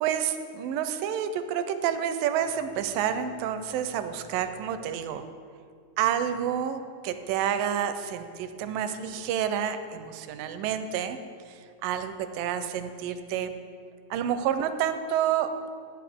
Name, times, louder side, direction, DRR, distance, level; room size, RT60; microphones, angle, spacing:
voice 1, 0.0-5.2 6.0-11.2 11.8-13.5 14.1-15.7, right 9 dB, 80° right, 10 dB, 2.1 m, -29 dB
14.5 x 9.0 x 3.5 m, 2.3 s
omnidirectional pair, 4.2 m